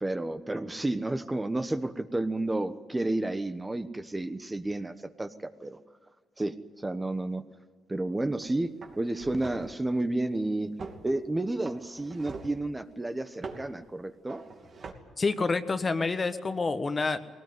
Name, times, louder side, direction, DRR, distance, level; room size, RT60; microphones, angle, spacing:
voice 1, 0.0-5.8 6.4-7.4 7.9-10.8 11.0-14.4, right 2 dB, 15° right, 9 dB, 1.1 m, -31 dB
sound 1, 8.2-8.4 8.8-9.8 10.8-11.1 11.7-12.6 13.4-13.7 14.3-14.9, right 4 dB, 50° right, 2.9 m, -43 dB
voice 2, 15.2-17.2, left 4 dB, 30° left, 10 dB, 1.4 m, -28 dB
21.0 x 18.5 x 9.5 m, 1.5 s
cardioid pair, 90°, 0 cm